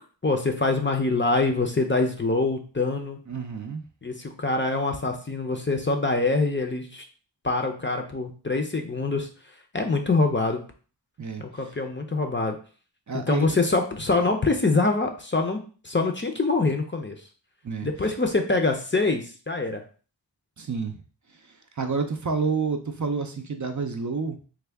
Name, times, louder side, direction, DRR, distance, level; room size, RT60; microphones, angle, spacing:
voice 1, 0.2-3.2 4.0-7.0 7.4-9.3 9.7-10.6 11.4-12.6 13.1-17.2 17.8-19.8, left 3 dB, 25° left, 4 dB, 0.5 m, -25 dB
voice 2, 3.3-3.8 11.2-11.7 13.1-13.6 17.6-18.1 20.6-21.0 21.3-24.4, right 4 dB, 45° right, 5 dB, 0.5 m, -29 dB
3.4 x 2.2 x 3.4 m, 0.39 s
wide cardioid pair, 50°, 43 cm